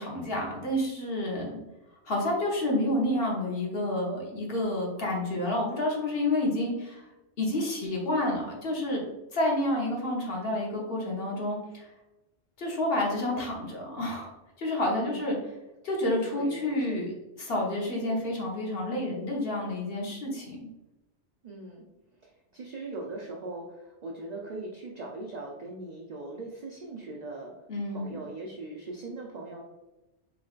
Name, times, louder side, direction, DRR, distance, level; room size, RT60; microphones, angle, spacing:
voice 1, 0.0-1.6 2.1-7.0 7.4-9.0 9.3-11.9 12.6-14.3 14.6-15.4 15.8-17.1 17.4-20.6 27.7-28.1, left 1 dB, 60° left, -2 dB, 1.1 m, -29 dB
voice 2, 14.9-15.3 16.4-17.0 21.4-21.8 22.2-27.5 27.9-29.6, right 2 dB, 50° right, -1 dB, 0.5 m, -40 dB
4.5 x 3.0 x 2.4 m, 1.0 s
omnidirectional pair, 1.1 m